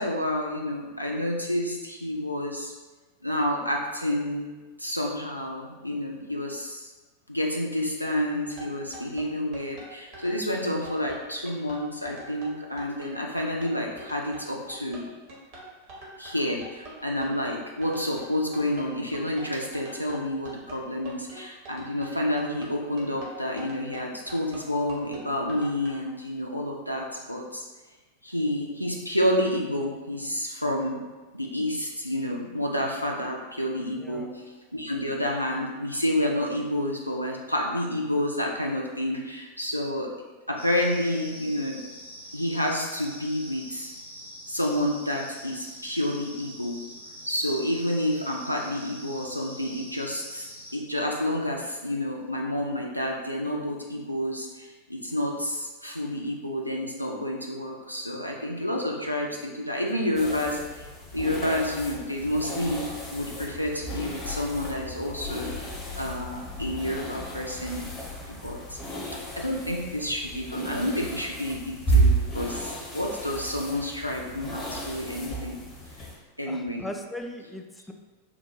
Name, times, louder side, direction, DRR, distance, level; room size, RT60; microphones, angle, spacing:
voice 1, 0.0-2.7 3.2-6.9 7.3-15.0 16.2-27.7 28.2-31.0 31.3-34.4 34.7-40.1 40.5-41.8 42.3-43.9 44.5-46.8 47.3-50.5 50.7-60.9 61.1-65.5 66.0-67.9 68.3-68.8 69.4-75.6 76.4-76.8, left 1 dB, 90° left, -1 dB, 0.3 m, -29 dB
sound 1, 8.5-25.9, right 1 dB, 50° right, 0.9 m, -44 dB
voice 2, 33.9-34.3 76.5-77.9, left 1 dB, 5° left, 4 dB, 0.3 m, -38 dB
sound 2, 40.6-50.8, equal, 90° right, 0.6 m, -44 dB
sound 3, 60.1-76.1, right 2 dB, 20° left, 0.9 m, -32 dB
3.7 x 2.1 x 3.0 m, 1.3 s
figure-of-eight pair, 90°, 0 cm